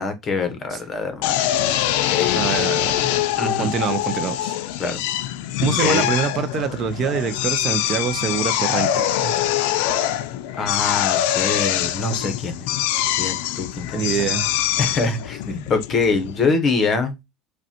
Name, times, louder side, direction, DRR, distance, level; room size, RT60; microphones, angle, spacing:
voice 1, 0.0-1.5 2.1-2.5 3.4-3.7 4.8-5.0 5.8-6.1 10.6-12.7 13.2-14.3 14.8-17.1, left 4 dB, 30° left, 0.8 m, -24 dB
Drill, 1.2-16.5, left 12 dB, 80° left, 0.3 m, -23 dB
voice 2, 2.3-3.1 3.6-4.6 5.6-9.4 13.9-14.5 16.5-16.6, right 7 dB, 35° right, 0.4 m, -25 dB
5.1 x 2.1 x 2.8 m
cardioid pair, 145°, 0 cm